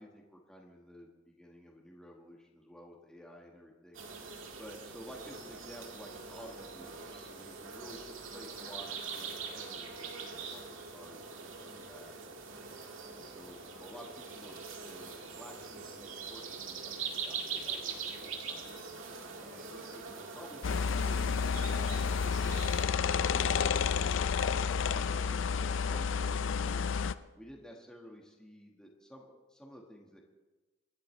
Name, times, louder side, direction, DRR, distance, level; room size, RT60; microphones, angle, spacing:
voice 1, 0.0-4.0 4.6-10.6 10.9-12.1 13.0-18.7 19.4-26.9 27.4-30.2, equal, 5° left, -2 dB, 1.6 m, -53 dB
sound 1, 3.9-22.9, right 5 dB, 85° right, 1.9 m, -43 dB
sound 2, 20.6-27.1, left 6 dB, 70° left, 0.5 m, -30 dB
26.5 x 11.5 x 3.3 m, 1.2 s
head